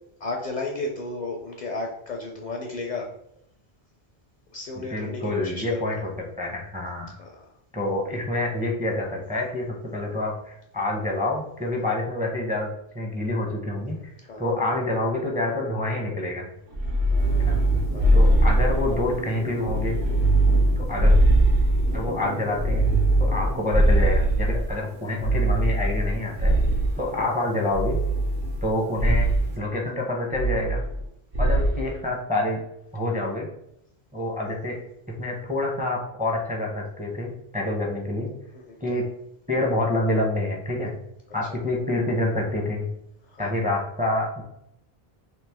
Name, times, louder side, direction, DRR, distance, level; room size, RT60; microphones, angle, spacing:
voice 1, 0.2-3.1 4.5-6.0 7.2-7.4 14.2-14.4 16.9-17.5 17.9-18.2 27.0-27.1 34.5-34.6 38.5-39.0 43.3-43.5, left 2 dB, 55° left, 1 dB, 0.5 m, -34 dB
voice 2, 4.8-6.1 6.4-7.1 7.7-9.7 9.9-12.7 12.9-14.0 14.4-16.4 17.4-17.6 18.1-20.0 20.8-21.1 21.9-22.9 23.2-26.6 27.0-28.0 28.6-29.3 29.6-30.9 31.4-32.6 32.9-33.5 34.1-34.8 35.1-38.3 38.8-39.0 39.5-41.0 41.3-42.9 43.4-44.4, left 1 dB, 10° right, -1 dB, 0.4 m, -27 dB
sound 1, 16.7-19.2 19.6-22.1 22.5-24.7 25.2-27.1 27.7-28.7 29.0-29.5 30.3-31.1 31.3-31.8, right 1 dB, 60° right, 0.9 m, -21 dB
sound 2, 17.2-29.6, right 2 dB, 90° right, 1.2 m, -39 dB
3.1 x 2.7 x 3.4 m, 0.77 s
omnidirectional pair, 1.0 m